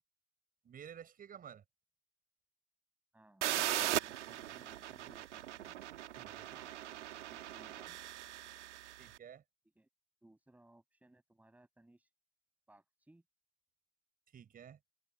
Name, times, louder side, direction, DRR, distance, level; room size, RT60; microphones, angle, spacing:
voice 1, 0.6-1.6 4.0-4.1 6.2-6.5 9.0-9.4 14.3-14.8, right 8 dB, 25° right, 7.0 m, -52 dB
voice 2, 3.1-3.7 4.0-5.7 6.3-8.0 9.8-9.9 10.2-12.1 12.7-13.2, right 1 dB, 5° right, 7.8 m, -64 dB
sound 1, 3.4-9.1, right 12 dB, 90° right, 1.7 m, -39 dB
supercardioid pair, 125°, 34 cm